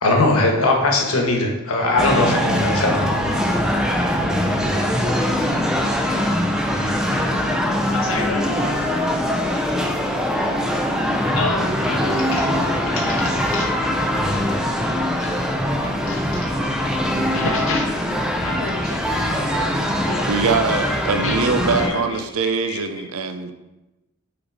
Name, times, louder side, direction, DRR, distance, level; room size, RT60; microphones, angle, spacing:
voice 1, 0.0-3.3, left 2 dB, 90° left, 1 dB, 1.3 m, -19 dB
sound 1, 2.0-21.9, equal, 5° right, 0.5 m, -22 dB
voice 2, 7.9-8.5 11.3-13.9 14.2-14.5 15.2-15.3 15.7-16.2 17.3-18.1 18.4-20.3 21.2-22.8, left 3 dB, 65° left, -1 dB, 0.7 m, -31 dB
voice 3, 20.3-23.5, right 5 dB, 80° right, 7 dB, 0.5 m, -22 dB
5.9 x 4.1 x 4.7 m, 1.0 s
head